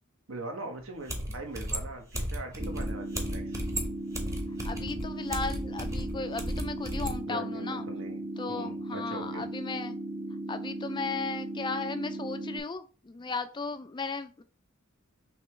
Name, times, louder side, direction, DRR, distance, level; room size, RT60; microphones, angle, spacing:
voice 1, 0.3-3.5 7.2-8.2 8.5-9.5, right 2 dB, 70° right, 1.1 m, -41 dB
sound 1, 0.8-0.9 1.1-7.2, equal, 15° right, 0.9 m, -34 dB
sound 2, 2.6-12.6, right 1 dB, 30° right, 0.5 m, -37 dB
voice 2, 4.6-7.9 8.4-10.0 10.5-14.4, left 4 dB, 20° left, 0.3 m, -36 dB
5.4 x 2.9 x 3.2 m
head